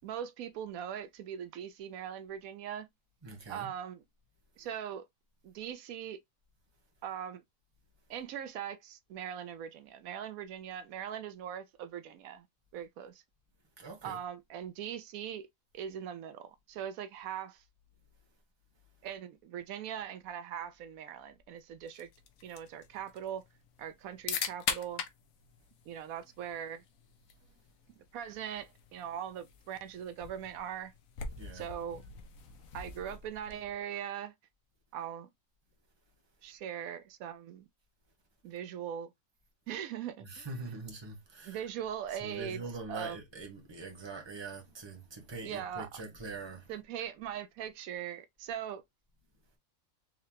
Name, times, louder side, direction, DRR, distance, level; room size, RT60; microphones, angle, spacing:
voice 1, 0.0-2.9 3.5-4.0 4.6-5.1 5.4-6.2 7.0-7.4 8.1-12.5 12.7-13.2 14.0-15.5 15.7-17.6 19.0-22.1 22.4-23.4 23.8-25.0 25.9-26.8 28.1-30.9 31.5-32.0 32.7-34.3 34.9-35.3 36.4-37.7 38.4-39.1 39.7-40.5 41.4-42.6 42.9-43.2 45.4-45.9 46.7-48.8, right 9 dB, 80° right, 1.0 m, -40 dB
voice 2, 3.2-3.7 13.8-14.2 31.4-31.6 40.2-41.6 42.2-46.7, right 3 dB, 20° right, 1.1 m, -43 dB
sound 1, 21.9-33.8, left 7 dB, 75° left, 1.1 m, -43 dB
3.8 x 3.2 x 2.7 m
omnidirectional pair, 1.5 m